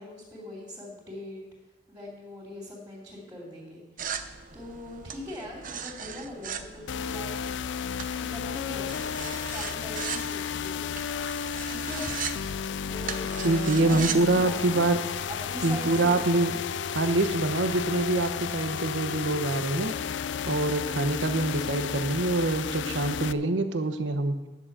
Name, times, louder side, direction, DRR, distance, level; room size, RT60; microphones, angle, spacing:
voice 1, 0.0-1.4 1.9-7.4 8.2-9.2 9.5-10.9 11.4-12.1 12.8-13.2 13.7-14.9 15.3-16.2, left 1 dB, 15° right, -7 dB, 3.1 m, -41 dB
sound 1, 4.0-14.3, right 7 dB, 45° right, 0.7 m, -39 dB
sound 2, 6.9-23.3, left 7 dB, 70° left, 0.4 m, -33 dB
voice 2, 13.4-15.0 15.6-16.5 16.9-19.9 20.5-24.3, right 2 dB, 80° right, 8 dB, 0.9 m, -25 dB
10.5 x 6.9 x 7.4 m, 1.1 s
head